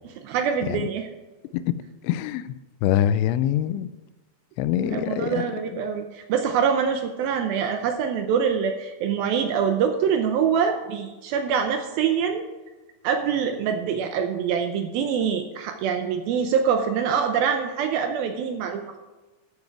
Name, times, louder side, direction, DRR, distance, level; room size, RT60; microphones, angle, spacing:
voice 1, 0.2-1.1 4.8-12.4 13.0-19.0, right 7 dB, 85° right, 6 dB, 2.1 m, -24 dB
voice 2, 2.0-2.4 2.8-3.9 4.6-5.4, left 11 dB, 85° left, 14 dB, 2.9 m, -24 dB
14.5 x 7.2 x 4.8 m, 1.2 s
omnidirectional pair, 5.2 m